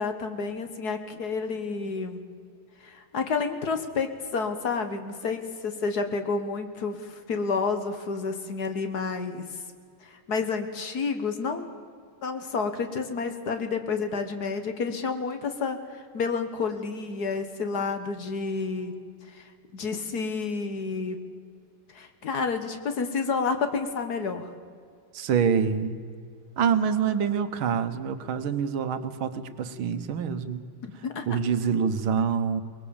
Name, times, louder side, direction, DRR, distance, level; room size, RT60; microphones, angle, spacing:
voice 1, 0.0-2.2 2.8-9.6 10.0-11.7 12.2-18.9 19.2-21.2 21.9-24.5 30.8-31.3, left 4 dB, 55° left, 7 dB, 1.7 m, -30 dB
voice 2, 25.1-26.0 26.6-30.6 31.3-32.6, right 7 dB, 80° right, 10 dB, 1.8 m, -26 dB
23.0 x 20.5 x 7.1 m, 2.2 s
omnidirectional pair, 2.3 m